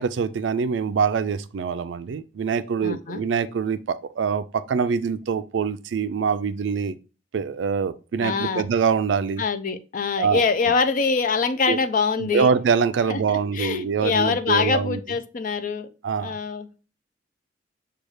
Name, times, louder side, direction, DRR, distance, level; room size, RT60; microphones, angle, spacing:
voice 1, 0.0-7.0 7.3-9.4 10.2-10.4 11.7-11.8 12.2-15.0 16.0-16.4, right 6 dB, 85° right, 0.4 m, -24 dB
voice 2, 2.8-3.2 8.2-8.6 9.4-12.5 13.1-13.2 13.5-15.9 16.2-16.9, left 5 dB, 50° left, 0.4 m, -24 dB
6.3 x 2.3 x 3.1 m
head